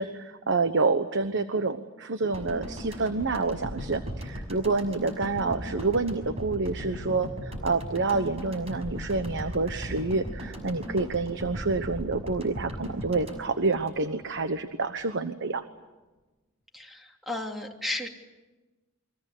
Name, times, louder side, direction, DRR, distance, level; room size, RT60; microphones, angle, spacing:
voice 1, 0.0-15.6, right 3 dB, 60° right, 9 dB, 1.1 m, -28 dB
sound 1, 2.3-14.5 14.8-15.0, equal, 30° right, 6.1 m, -38 dB
voice 2, 16.7-18.1, left 1 dB, ahead, 2 dB, 3.0 m, -34 dB
29.0 x 23.5 x 8.4 m, 1.2 s
head